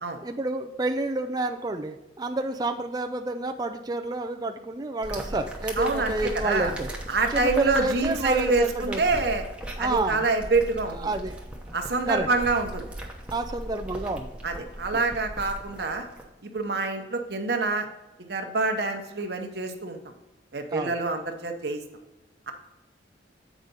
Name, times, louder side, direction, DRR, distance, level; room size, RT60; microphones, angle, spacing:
voice 1, 0.2-6.9 7.3-9.2 9.8-10.3 10.9-11.4 12.1-12.3 13.3-14.6 14.9-15.0 20.7-21.0, right 2 dB, 20° right, 5 dB, 0.4 m, -29 dB
sound 1, 5.0-16.2, right 1 dB, 5° right, 0.9 m, -38 dB
voice 2, 5.8-6.7 7.1-9.5 9.8-11.0 11.7-12.9 14.4-16.1 16.4-17.9 18.3-20.0 20.5-21.8 22.5-22.6, right 3 dB, 60° right, 4 dB, 0.9 m, -26 dB
8.1 x 4.9 x 4.0 m, 1.0 s
head